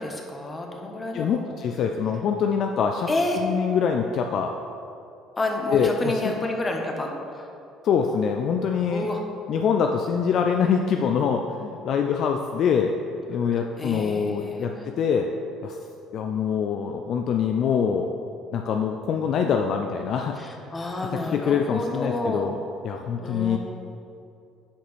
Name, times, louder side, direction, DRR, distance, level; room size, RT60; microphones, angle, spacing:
voice 1, 0.0-1.4 3.1-3.4 5.4-7.5 8.9-9.2 13.8-14.8 20.4-22.5 23.2-23.6, left 2 dB, 25° left, 2 dB, 1.2 m, -29 dB
voice 2, 1.1-3.1 3.3-4.5 5.7-6.1 7.8-9.1 9.5-13.0 13.3-15.3 15.6-15.8 16.1-18.1 18.5-20.3 21.1-22.6 22.8-23.6, left 7 dB, 60° left, 4 dB, 0.4 m, -24 dB
10.0 x 5.1 x 3.4 m, 2.6 s
hypercardioid pair, 60°, 0 cm